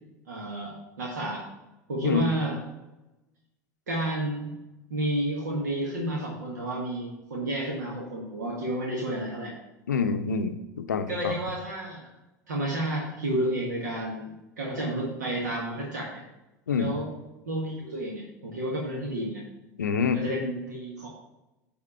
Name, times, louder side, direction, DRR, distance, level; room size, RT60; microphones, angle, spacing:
voice 1, 0.3-1.4 1.9-2.6 3.9-4.5 4.9-9.5 11.1-12.1 12.5-16.2 16.7-17.1 17.4-19.4 20.1-21.1, right 1 dB, 75° right, -2 dB, 1.5 m, -31 dB
voice 2, 9.9-11.4 16.7-17.0 19.8-20.3, left 5 dB, 80° left, 8 dB, 0.5 m, -27 dB
9.7 x 3.6 x 5.4 m, 0.99 s
figure-of-eight pair, 80°, 9 cm